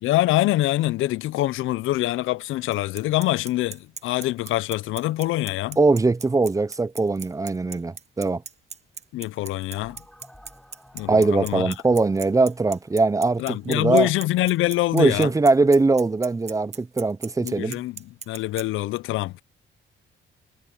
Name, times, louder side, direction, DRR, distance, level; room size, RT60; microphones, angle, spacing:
voice 1, 0.0-5.8 9.1-10.0 10.9-11.7 13.4-15.3 17.4-19.4, left 16 dB, 85° left, 0.6 m, -25 dB
Bicycle, 2.7-18.6, right 5 dB, 35° right, 1.1 m, -38 dB
voice 2, 5.8-8.4 11.1-14.1 14.9-17.8, right 3 dB, 15° right, 0.6 m, -21 dB
sound 1, 9.7-14.4, equal, 5° left, 7.0 m, -54 dB
cardioid pair, 90°, 20 cm